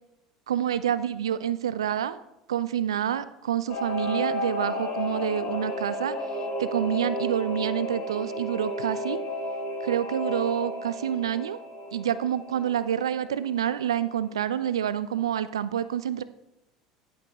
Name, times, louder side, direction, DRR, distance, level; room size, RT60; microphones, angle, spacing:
voice 1, 0.5-2.2 2.5-6.2 6.6-9.2 9.8-11.6 11.9-16.2, right 10 dB, 70° right, 15 dB, 0.4 m, -28 dB
Singing / Musical instrument, 3.7-13.7 14.0-14.1, left 1 dB, 50° left, 3.3 m, -33 dB
10.5 x 8.5 x 3.1 m, 0.86 s
figure-of-eight pair, 70°, 3 cm